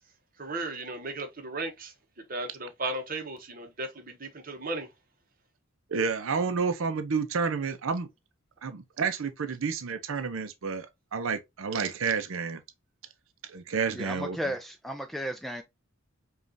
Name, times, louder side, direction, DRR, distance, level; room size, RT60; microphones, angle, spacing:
voice 1, 0.4-1.9 2.3-4.9, right 2 dB, 40° right, 0.9 m, -35 dB
voice 2, 5.9-8.1 8.6-12.6 13.5-14.4, right 5 dB, 70° right, 0.5 m, -30 dB
voice 3, 13.9-15.6, equal, ahead, 0.3 m, -34 dB
5.1 x 2.4 x 2.6 m
head